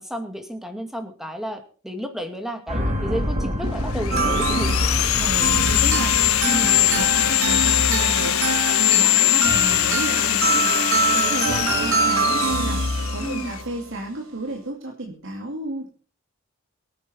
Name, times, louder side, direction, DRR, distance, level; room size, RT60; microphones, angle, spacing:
voice 1, 0.0-4.8 6.4-6.8 13.2-13.5, equal, ahead, 6 dB, 2.1 m, -31 dB
sound 1, 2.7-8.9 9.2-9.3, equal, 35° right, 3.9 m, -29 dB
Sawing, 3.7-13.6, left 15 dB, 85° left, 0.6 m, -22 dB
sound 2, 4.1-13.8, right 2 dB, 85° right, 3.5 m, -24 dB
voice 2, 5.1-10.7 11.1-15.9, right 2 dB, 65° right, 1 dB, 2.5 m, -32 dB
23.5 x 9.6 x 4.3 m, 0.38 s
head